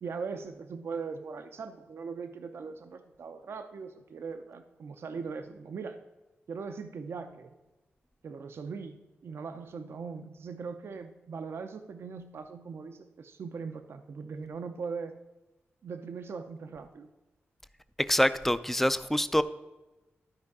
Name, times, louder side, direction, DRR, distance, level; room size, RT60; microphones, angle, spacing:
voice 1, 0.0-6.0 6.5-7.5 8.2-15.2 15.8-17.1, right 5 dB, 65° right, 8 dB, 0.5 m, -40 dB
voice 2, 18.0-19.4, equal, 5° left, 14 dB, 0.4 m, -25 dB
12.5 x 4.6 x 4.7 m, 1.1 s
wide cardioid pair, 100°, 4 cm